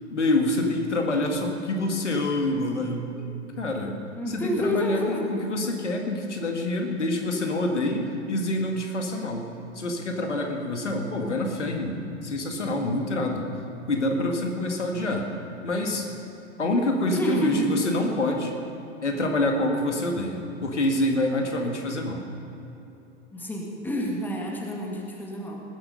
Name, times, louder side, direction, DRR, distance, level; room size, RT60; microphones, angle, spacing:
voice 1, 0.1-3.3 3.6-4.0 4.3-9.5 9.8-13.5 13.9-15.3 15.6-16.1 16.6-18.5 19.0-22.3, left 1 dB, 70° left, 2 dB, 2.1 m, -26 dB
voice 2, 4.2-5.3 17.1-17.8 23.3-25.6, equal, 5° left, -1 dB, 1.8 m, -28 dB
19.5 x 10.0 x 5.4 m, 2.8 s
figure-of-eight pair, 100°, 36 cm